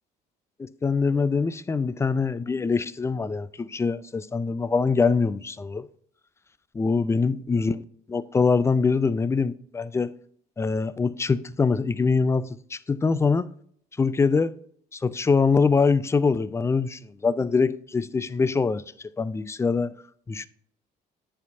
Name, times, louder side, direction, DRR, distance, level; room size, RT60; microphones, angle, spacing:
voice 1, 0.6-5.9 6.7-7.8 8.1-10.1 10.6-12.4 12.7-13.5 14.0-14.5 14.9-18.8 19.2-19.9 20.3-20.5, left 4 dB, 15° left, 0.3 m, -23 dB
9.7 x 4.5 x 2.7 m
cardioid pair, 110°, 17 cm